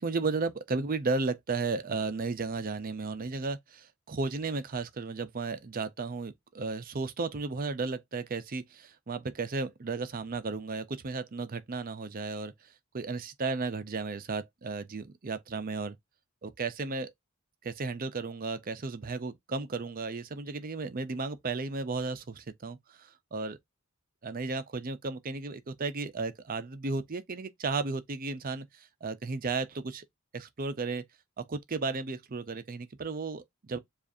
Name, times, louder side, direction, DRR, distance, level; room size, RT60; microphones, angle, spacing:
voice 1, 0.0-16.0 16.4-17.1 17.6-23.6 24.2-30.0 30.3-31.0 31.4-33.8, right 3 dB, 40° right, 0.6 m, -34 dB
7.3 x 2.5 x 2.6 m
head